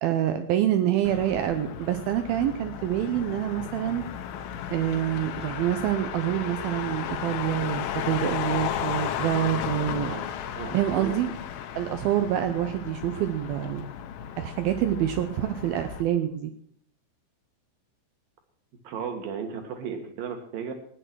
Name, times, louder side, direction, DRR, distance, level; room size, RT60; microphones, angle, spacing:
voice 1, 0.0-4.0 4.7-10.1 10.7-11.3 11.8-13.9 14.4-16.5, right 11 dB, 85° right, 9 dB, 2.1 m, -26 dB
Motor vehicle (road), 1.0-16.0, left 9 dB, 80° left, 3.3 m, -34 dB
voice 2, 10.5-11.2 18.8-20.7, right 6 dB, 60° right, 6 dB, 3.2 m, -34 dB
15.5 x 10.0 x 6.3 m, 0.64 s
omnidirectional pair, 5.3 m